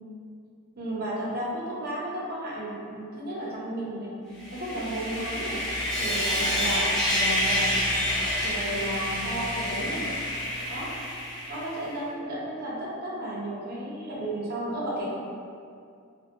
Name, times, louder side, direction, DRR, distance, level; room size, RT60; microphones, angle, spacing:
voice 1, 0.8-4.2 4.5-5.6 6.0-7.9 8.4-10.1 10.7-10.9 11.5-15.1, right 1 dB, 45° right, -6 dB, 0.6 m, -33 dB
Sawing, 4.4-11.8, left 1 dB, ahead, 0.5 m, -28 dB
2.6 x 2.1 x 2.4 m, 2.3 s
head